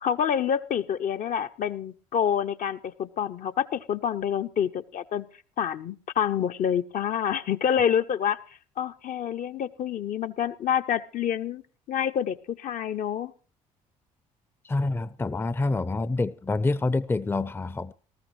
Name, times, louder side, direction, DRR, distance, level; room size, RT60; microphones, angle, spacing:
voice 1, 0.0-5.3 5.6-8.4 8.8-11.6 11.9-13.3, left 8 dB, 50° left, 0.7 m, -27 dB
voice 2, 14.6-17.9, left 3 dB, 15° left, 0.5 m, -27 dB
19.0 x 14.0 x 3.2 m
figure-of-eight pair, 50°, 17 cm